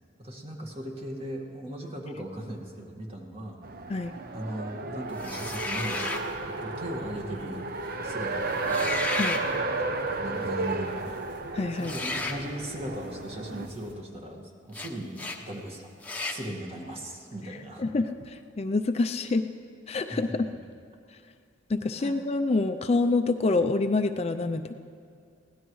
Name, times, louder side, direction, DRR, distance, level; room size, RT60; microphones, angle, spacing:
voice 1, 0.2-3.6 3.9-6.2 6.4-7.7 8.0-8.9 10.2-11.2 11.4-15.9 16.2-17.9 20.0-20.6 22.0-22.2, right 1 dB, 30° right, 1 dB, 1.8 m, -38 dB
Race car auto racing, 3.6-13.7, right 3 dB, 50° right, 0.8 m, -33 dB
sound 1, 5.2-6.3 8.6-9.4 11.8-12.4 14.7-14.9 15.2-15.4 16.0-16.4, left 2 dB, 10° left, 0.9 m, -32 dB
sound 2, 6.1-13.9, equal, 75° right, 2.1 m, -48 dB
voice 2, 11.5-11.9 17.8-19.5 19.9-20.3 21.7-24.8, left 3 dB, 35° left, 7 dB, 0.4 m, -26 dB
23.0 x 17.0 x 3.1 m, 2.3 s
head